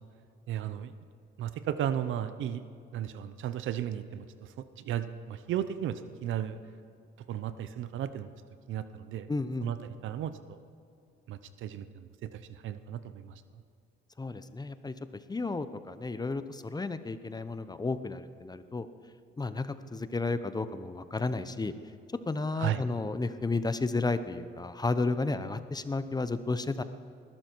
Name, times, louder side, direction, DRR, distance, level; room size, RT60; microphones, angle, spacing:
voice 1, 0.5-0.9 1.4-2.6 2.9-4.5 4.8-6.6 7.3-8.3 8.7-9.3 9.6-10.6 11.3-13.3 22.6-22.8, right 10 dB, 80° right, 12 dB, 0.8 m, -35 dB
voice 2, 9.3-9.7 14.2-14.9 15.3-18.9 19.4-21.7 22.3-26.8, left 3 dB, 20° left, 12 dB, 0.8 m, -32 dB
20.5 x 12.0 x 4.6 m, 2.5 s
cardioid pair, 90°, 20 cm